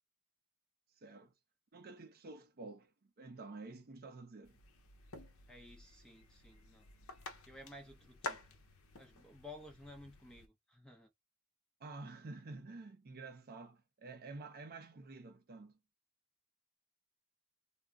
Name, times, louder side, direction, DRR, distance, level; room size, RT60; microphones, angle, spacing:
voice 1, 0.9-1.3 1.7-4.6 11.8-15.8, right 3 dB, 45° right, 0.5 m, -50 dB
sound 1, 4.4-10.5, left 2 dB, 65° left, 0.6 m, -50 dB
voice 2, 5.5-6.9 7.5-8.6 9.0-11.1, left 1 dB, 5° left, 0.7 m, -55 dB
2.3 x 2.1 x 3.4 m
head